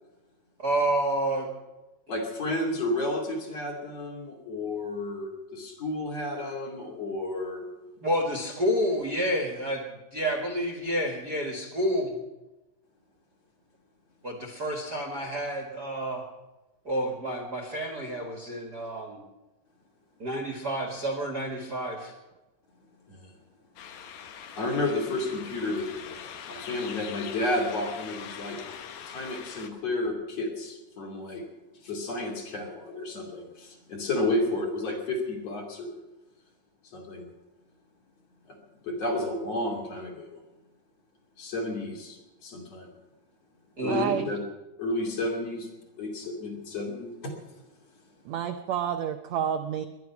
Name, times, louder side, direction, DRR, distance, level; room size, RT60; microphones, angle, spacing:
voice 1, 0.6-1.5 8.0-12.2 14.2-16.3 16.8-19.2 20.2-22.1 43.8-44.2, equal, 35° right, 4 dB, 1.7 m, -29 dB
voice 2, 2.1-7.7 23.1-23.3 24.6-25.9 26.5-28.6 29.1-31.4 31.8-36.0 36.9-37.3 38.5-38.6 38.8-40.4 41.4-42.9 43.8-44.4 44.8-45.7 46.0-47.4, left 2 dB, 50° left, 0 dB, 3.6 m, -31 dB
sound 1, 23.8-29.7, left 8 dB, 65° left, 2.0 m, -42 dB
voice 3, 43.9-44.3 48.2-49.9, right 9 dB, 85° right, 7 dB, 1.5 m, -29 dB
21.5 x 11.0 x 5.9 m, 1.0 s
omnidirectional pair, 4.0 m